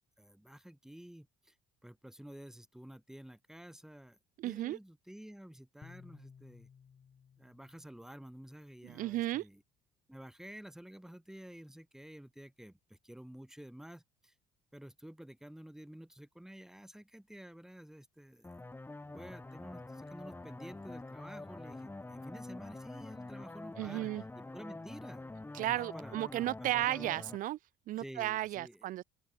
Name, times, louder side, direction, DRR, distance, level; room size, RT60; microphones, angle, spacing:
voice 1, 0.2-1.6 1.8-4.2 4.4-6.7 7.4-9.6 10.1-14.3 14.7-18.5 19.1-25.2 25.5-26.7 27.0-27.1 28.0-28.9, equal, 5° right, 4.1 m, -51 dB
voice 2, 4.4-4.8 8.8-9.5 23.8-24.2 25.5-27.6 27.9-29.0, right 15 dB, 65° right, 0.6 m, -34 dB
sound 1, 5.8-9.1, left 6 dB, 40° left, 3.7 m, -59 dB
sound 2, 18.4-27.4, left 2 dB, 15° left, 4.8 m, -46 dB
open air
supercardioid pair, 90°, 15 cm